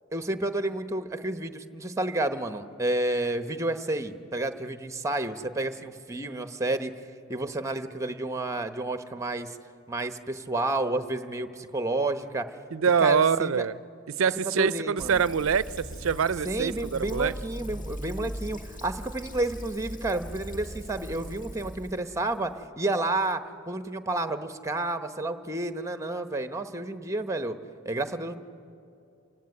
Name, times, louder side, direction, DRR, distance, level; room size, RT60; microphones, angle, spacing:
voice 1, 0.1-6.9 7.3-9.6 9.9-12.5 13.0-13.7 14.4-15.2 16.4-27.6 27.8-28.4, right 2 dB, 15° right, 0.9 m, -30 dB
voice 2, 12.7-13.7 14.2-17.3, right 6 dB, 75° right, 0.5 m, -25 dB
Fill (with liquid), 15.0-22.6, equal, 40° left, 1.9 m, -40 dB
27.5 x 16.0 x 9.7 m
head